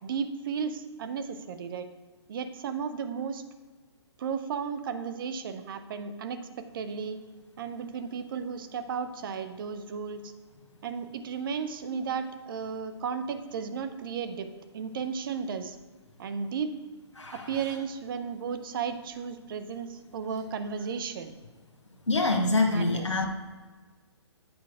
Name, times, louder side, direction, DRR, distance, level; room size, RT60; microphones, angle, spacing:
voice 1, 0.0-1.9 2.3-3.4 4.2-7.2 7.6-10.3 10.8-14.5 14.7-15.8 16.2-16.7 17.3-21.3 22.7-23.1, right 6 dB, 50° right, 9 dB, 0.9 m, -34 dB
voice 2, 17.2-17.5 22.1-23.3, left 2 dB, 90° left, 2 dB, 1.1 m, -25 dB
8.8 x 5.5 x 4.7 m, 1.4 s
figure-of-eight pair, 130°, 15 cm